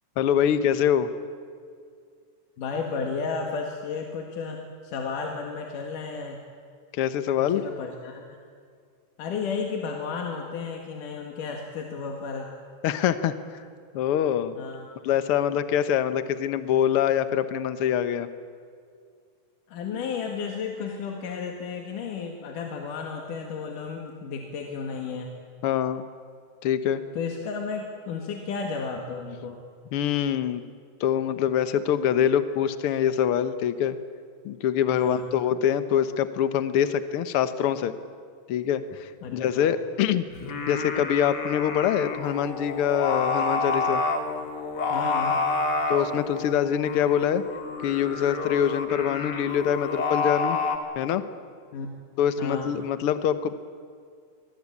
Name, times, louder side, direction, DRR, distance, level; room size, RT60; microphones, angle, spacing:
voice 1, 0.2-1.1 6.9-7.6 12.8-13.6 13.9-14.5 15.0-18.3 25.6-26.0 26.6-27.0 29.9-30.6 31.0-34.0 34.4-37.9 38.5-40.3 40.7-44.0 45.9-47.4 47.8-50.6 51.0-51.2 52.2-53.5, left 9 dB, 60° left, 11 dB, 1.6 m, -24 dB
voice 2, 2.6-6.4 7.4-8.4 9.2-12.5 14.6-14.9 19.7-25.3 27.1-29.6 34.9-35.3 39.2-39.7 44.9-45.4 51.7-51.9 52.4-52.7, left 5 dB, 85° left, 2 dB, 3.4 m, -33 dB
Singing, 40.3-50.8, left 3 dB, 35° left, 2.2 m, -29 dB
25.5 x 22.0 x 8.6 m, 2.2 s
omnidirectional pair, 3.6 m